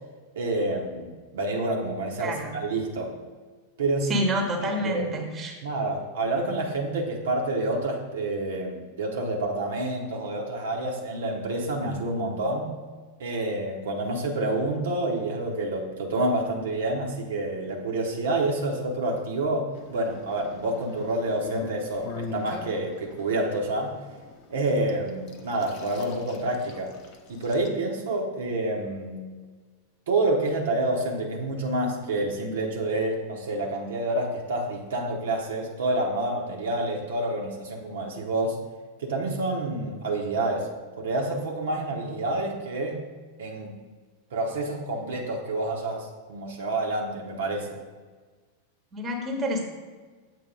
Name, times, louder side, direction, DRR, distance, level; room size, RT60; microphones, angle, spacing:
voice 1, 0.3-3.2 3.8-4.2 4.6-5.1 5.6-12.7 13.2-23.9 24.5-26.9 27.3-29.2 30.1-38.6 39.0-40.7 41.0-43.0 43.4-43.8 44.3-47.8, right 2 dB, 60° right, 0 dB, 0.9 m, -28 dB
voice 2, 2.2-2.6 4.1-5.5 48.9-49.6, equal, 20° right, 2 dB, 1.1 m, -28 dB
sound 1, 19.8-27.7, left 4 dB, 40° left, 0.7 m, -42 dB
7.5 x 2.8 x 5.2 m, 1.4 s
figure-of-eight pair, 90°, 0 cm